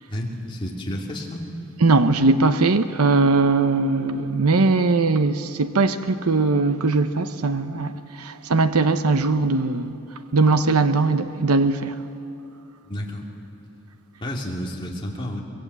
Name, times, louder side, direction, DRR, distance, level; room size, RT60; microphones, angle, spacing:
voice 1, 0.1-1.5 12.8-13.2 14.2-15.4, left 1 dB, 20° left, 2.8 m, -30 dB
voice 2, 1.8-9.9 10.3-11.9, right 3 dB, 90° right, 0.8 m, -20 dB
23.5 x 22.0 x 8.1 m
head